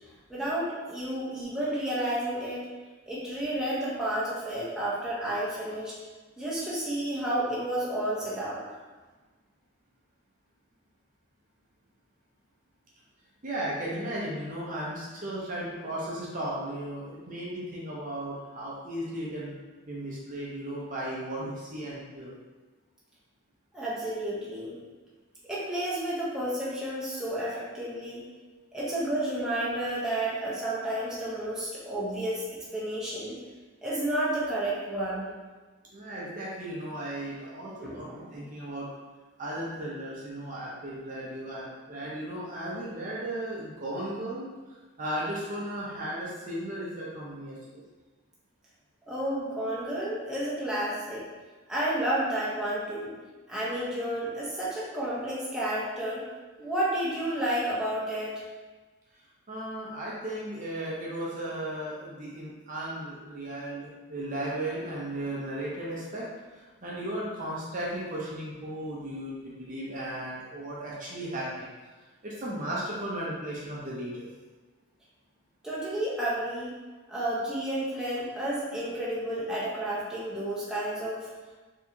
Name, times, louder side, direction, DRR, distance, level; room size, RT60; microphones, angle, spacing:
voice 1, 0.3-2.6 3.1-5.9 6.4-8.6 23.7-24.8 25.5-28.2 28.7-32.5 32.7-33.4 33.8-35.3 37.8-38.5 49.1-51.2 51.7-53.1 53.5-56.2 56.6-58.3 75.6-76.7 77.1-81.3, right 1 dB, 5° right, -8 dB, 0.8 m, -31 dB
voice 2, 13.4-19.5 19.9-22.3 35.9-38.9 39.4-44.5 45.0-47.8 59.5-71.7 72.2-74.3, right 1 dB, 35° right, -6 dB, 0.6 m, -35 dB
4.5 x 2.8 x 2.7 m, 1.3 s
head